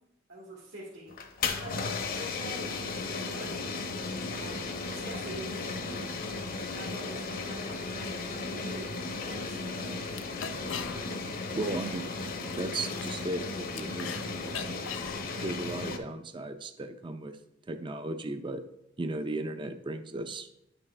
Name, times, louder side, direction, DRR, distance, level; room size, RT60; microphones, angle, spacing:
voice 1, 0.3-3.7 4.4-6.2 6.5-8.9 9.3-10.1 11.5-11.7, right 1 dB, 80° right, -7 dB, 2.1 m, -46 dB
sound 1, 1.1-16.0, left 3 dB, 50° left, 0.9 m, -35 dB
sound 2, 9.7-9.8 10.1-11.3 11.6-14.2 14.5-16.0, left 7 dB, 70° left, 0.5 m, -41 dB
voice 2, 11.6-12.0 12.6-14.8 15.4-17.4 17.7-18.6 19.0-20.5, right 2 dB, 25° right, 9 dB, 0.5 m, -36 dB
9.8 x 6.0 x 3.3 m, 0.84 s
head